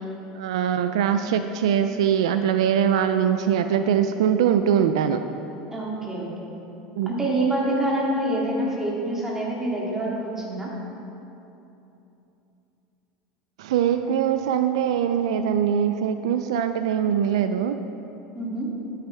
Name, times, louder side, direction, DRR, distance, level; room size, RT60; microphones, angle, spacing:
voice 1, 0.3-5.2 7.0-7.2 13.6-17.8, right 8 dB, 85° right, 9 dB, 0.4 m, -22 dB
voice 2, 5.7-6.3 7.1-10.7 18.3-18.7, right 1 dB, 15° right, -4 dB, 2.7 m, -26 dB
13.0 x 9.3 x 3.5 m, 2.9 s
supercardioid pair, 110°, 3 cm